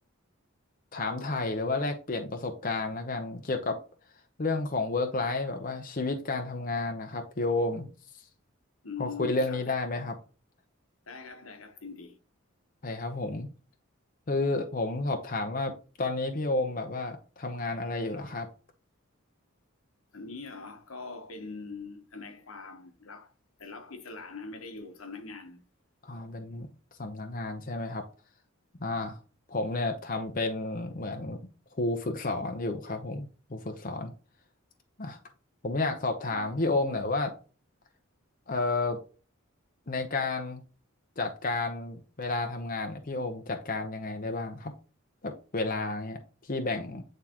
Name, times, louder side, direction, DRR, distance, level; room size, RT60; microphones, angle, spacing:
voice 1, 0.9-3.8 4.4-7.9 9.0-10.2 12.8-13.5 14.3-18.5 26.0-26.7 27.0-28.0 28.8-29.2 29.5-31.4 31.8-34.1 35.0-35.2 35.6-37.3 38.5-39.0 39.9-40.6 41.2-44.7 45.2-46.2 46.5-47.0, left 2 dB, 40° left, 0.8 m, -31 dB
voice 2, 8.8-9.6 11.1-12.2 20.1-23.3 23.6-25.6 36.3-36.7, left 4 dB, 80° left, 1.2 m, -42 dB
9.1 x 3.6 x 2.9 m
head